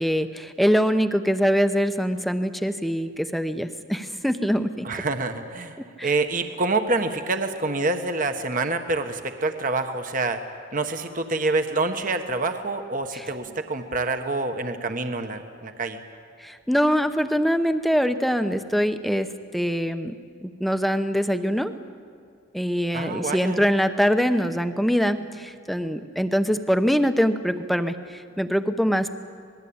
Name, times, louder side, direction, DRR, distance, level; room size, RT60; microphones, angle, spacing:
voice 1, 0.0-5.0 6.0-6.1 13.1-13.2 16.4-19.3 19.5-20.1 20.4-21.7 22.5-29.2, equal, ahead, 8 dB, 0.8 m, -23 dB
voice 2, 4.8-10.4 10.7-16.0 22.9-23.6, right 3 dB, 40° right, 7 dB, 1.3 m, -27 dB
26.5 x 19.5 x 8.7 m, 2.4 s
head